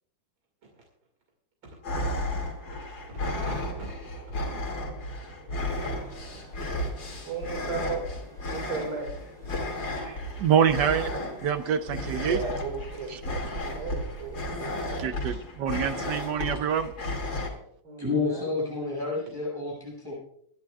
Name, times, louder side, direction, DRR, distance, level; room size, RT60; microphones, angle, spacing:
sound 1, 1.8-17.5, left 1 dB, 75° left, 3.3 m, -33 dB
voice 1, 3.1-3.9 4.3-4.4 4.9-5.2 5.4-6.2 7.3-8.0 8.5-9.1 10.0-10.3 12.2-15.4 17.8-18.5, right 4 dB, 85° right, 0 dB, 3.0 m, -37 dB
sound 2, 5.8-14.5, right 2 dB, 25° right, 2.8 m, -47 dB
voice 2, 10.4-12.4 13.1-13.2 15.0-16.9, right 8 dB, 70° right, 10 dB, 1.3 m, -26 dB
voice 3, 18.0-20.1, left 3 dB, 10° right, -6 dB, 5.8 m, -30 dB
25.5 x 10.5 x 2.4 m, 0.70 s
omnidirectional pair, 2.0 m